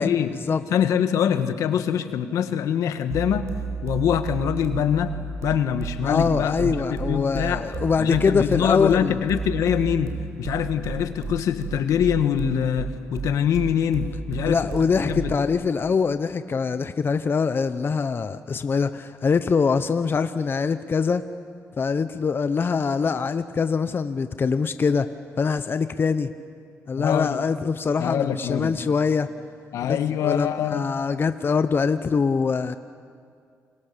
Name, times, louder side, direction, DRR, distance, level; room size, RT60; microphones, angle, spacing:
voice 1, 0.0-0.3 0.7-3.4 3.8-5.1 5.4-7.6 8.0-10.1 10.4-14.6 15.1-15.3 27.0-27.4 28.0-28.8 29.7-30.9, left 9 dB, 80° left, 9 dB, 1.5 m, -24 dB
sound 1, 3.1-15.5, right 5 dB, 65° right, 4.9 m, -32 dB
voice 2, 6.0-9.2 14.5-21.2 21.8-25.1 25.4-26.3 26.9-29.3 29.9-30.0 30.2-32.8, left 5 dB, 40° left, 10 dB, 0.9 m, -23 dB
29.5 x 23.0 x 6.9 m, 2.3 s
cardioid pair, 75°, 5 cm